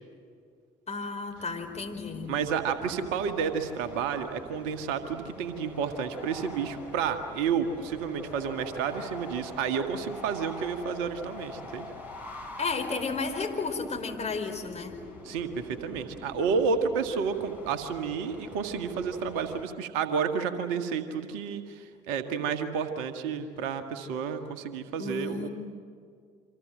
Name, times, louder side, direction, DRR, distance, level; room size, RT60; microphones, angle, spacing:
voice 1, 0.9-2.3 12.6-15.0 25.0-25.5, left 4 dB, 30° left, 4 dB, 5.0 m, -33 dB
sound 1, 1.3-19.7, left 2 dB, 85° left, 3.4 m, -45 dB
voice 2, 2.3-11.9 15.2-25.5, right 6 dB, 70° right, 8 dB, 1.7 m, -30 dB
28.5 x 25.5 x 7.8 m, 2.2 s
figure-of-eight pair, 50°, 21 cm